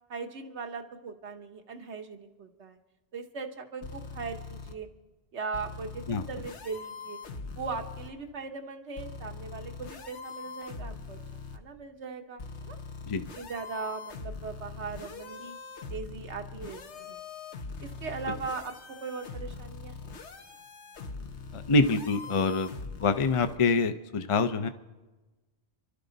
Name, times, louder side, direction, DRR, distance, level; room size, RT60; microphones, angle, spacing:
voice 1, 0.1-2.8 3.1-4.9 5.3-7.2 7.5-11.2 11.5-12.8 13.3-15.6 15.9-17.2 17.8-18.7 19.0-20.1, right 4 dB, 85° right, 6 dB, 1.4 m, -39 dB
sound 1, 3.8-4.7 5.5-8.1 9.0-11.6 12.4-23.6, left 4 dB, 90° left, 1.3 m, -42 dB
voice 2, 21.5-22.7 23.0-24.7, left 3 dB, 40° left, 9 dB, 0.6 m, -25 dB
29.5 x 12.0 x 4.0 m, 1.2 s
omnidirectional pair, 1.1 m